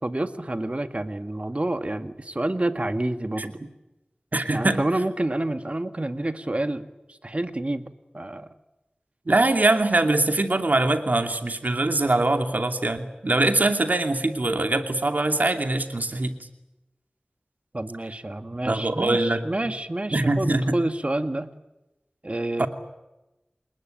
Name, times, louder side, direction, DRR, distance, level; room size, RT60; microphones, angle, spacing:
voice 1, 0.0-3.6 4.5-7.8 8.1-8.5 17.7-21.5 22.2-22.7, right 1 dB, 45° right, 9 dB, 1.9 m, -28 dB
voice 2, 4.3-4.8 9.3-16.4 18.7-19.4 20.1-20.7 22.6-22.7, right 2 dB, 65° right, 6 dB, 2.6 m, -23 dB
27.5 x 20.0 x 9.1 m, 0.99 s
wide cardioid pair, 40°, 3 cm